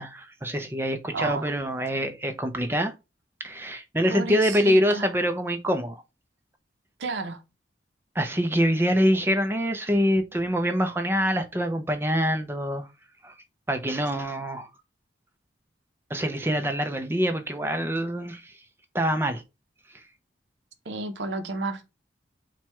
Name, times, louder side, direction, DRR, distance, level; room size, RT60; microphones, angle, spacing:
voice 1, 0.0-2.9 3.4-6.0 8.2-12.9 13.2-13.3 13.7-14.7 16.1-18.5 18.9-19.4, equal, 10° right, 0.5 m, -25 dB
voice 2, 1.1-1.4 4.1-5.1 7.0-7.4 20.9-22.0, right 3 dB, 75° right, 0.7 m, -32 dB
4.4 x 2.3 x 4.3 m
head